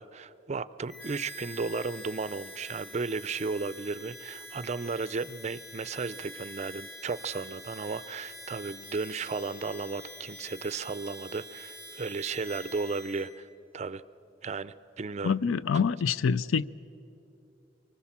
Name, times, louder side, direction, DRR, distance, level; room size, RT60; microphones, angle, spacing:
voice 1, 0.0-13.5 13.7-14.0 14.4-15.4, right 4 dB, 35° right, 16 dB, 0.4 m, -34 dB
Harmonica, 0.9-13.3, left 1 dB, 55° left, 3.7 m, -46 dB
voice 2, 15.2-16.6, left 6 dB, 85° left, 19 dB, 0.4 m, -26 dB
24.5 x 19.5 x 7.2 m, 2.9 s
head